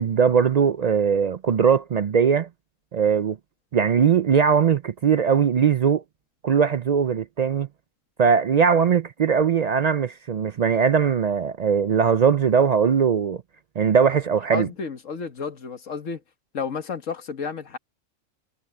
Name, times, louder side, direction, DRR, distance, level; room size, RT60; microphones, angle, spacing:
voice 1, 0.0-2.5 2.9-3.4 3.7-6.0 6.4-7.7 8.2-13.4 13.8-14.7, right 7 dB, 70° right, 0.4 m, -20 dB
voice 2, 14.5-16.2 16.5-17.8, left 5 dB, 85° left, 1.8 m, -31 dB
omnidirectional pair, 1.3 m